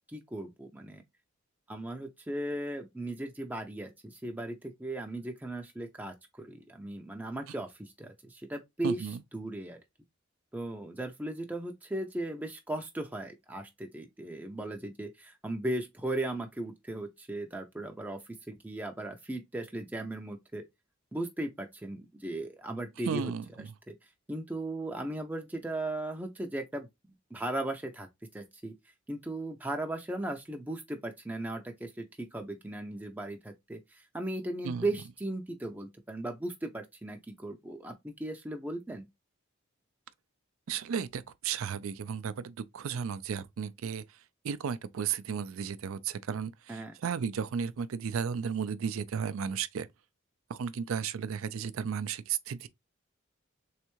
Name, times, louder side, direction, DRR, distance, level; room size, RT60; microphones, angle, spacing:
voice 1, 0.1-1.0 1.7-9.1 9.3-9.8 10.5-18.2 18.5-20.6 21.1-23.3 24.3-26.9 27.3-28.1 28.3-28.7 29.1-39.1 46.7-46.9, right 1 dB, 10° right, 0.4 m, -37 dB
voice 2, 8.8-9.2 23.0-23.7 34.6-34.9 40.7-44.0 44.4-49.9 50.5-52.7, right 7 dB, 80° right, 0.4 m, -34 dB
3.5 x 3.2 x 3.0 m
head